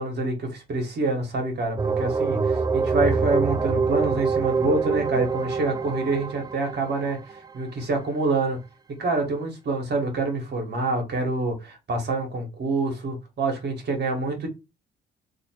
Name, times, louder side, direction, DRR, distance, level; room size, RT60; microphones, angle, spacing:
voice 1, 0.0-7.2 7.5-8.6 9.0-14.5, right 3 dB, 55° right, 1.5 m, -26 dB
sound 1, 1.8-7.5, right 4 dB, 20° right, 0.5 m, -25 dB
2.8 x 2.7 x 4.4 m
supercardioid pair, 60°, 21 cm